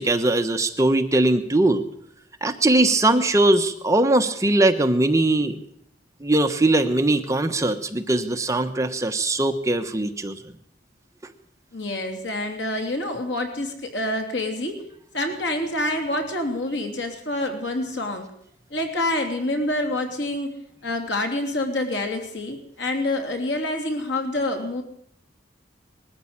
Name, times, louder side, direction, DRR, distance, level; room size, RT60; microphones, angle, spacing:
voice 1, 0.0-1.8 2.4-5.5 6.2-10.4, right 2 dB, 15° right, 7 dB, 1.1 m, -20 dB
voice 2, 11.7-14.8 15.1-18.3 18.7-20.5 20.8-24.8, left 1 dB, 85° left, 4 dB, 3.1 m, -27 dB
21.5 x 14.0 x 8.8 m, 0.68 s
head